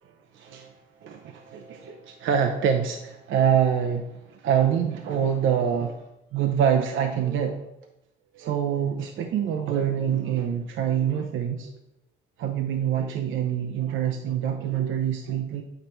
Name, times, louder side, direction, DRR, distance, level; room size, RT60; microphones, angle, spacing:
voice 1, 0.3-0.7 1.0-7.7 8.3-11.7 12.4-15.6, right 8 dB, 75° right, 0.6 m, -25 dB
8.0 x 4.0 x 4.4 m
cardioid pair, 90°, 20 cm